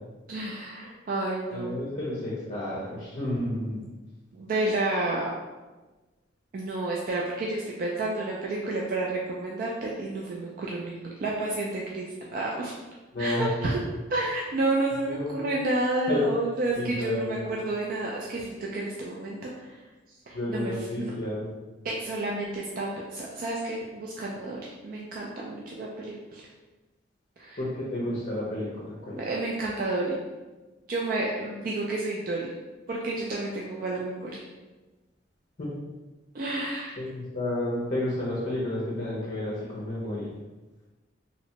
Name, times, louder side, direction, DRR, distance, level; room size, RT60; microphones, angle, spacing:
voice 1, 0.3-1.8 4.3-5.3 6.5-12.1 12.3-12.7 13.2-13.8 14.1-19.8 20.3-20.7 21.0-21.1 21.8-26.5 27.4-27.6 29.2-30.1 30.9-32.5 32.9-34.4 36.3-37.0, right 2 dB, 50° right, -3 dB, 0.3 m, -30 dB
voice 2, 1.5-3.8 13.1-13.5 15.1-15.5 16.1-16.3 16.7-17.5 20.3-21.5 27.6-29.2 35.6-35.7 37.0-40.3, left 1 dB, 40° left, -6 dB, 0.6 m, -31 dB
2.8 x 2.1 x 2.8 m, 1.2 s
head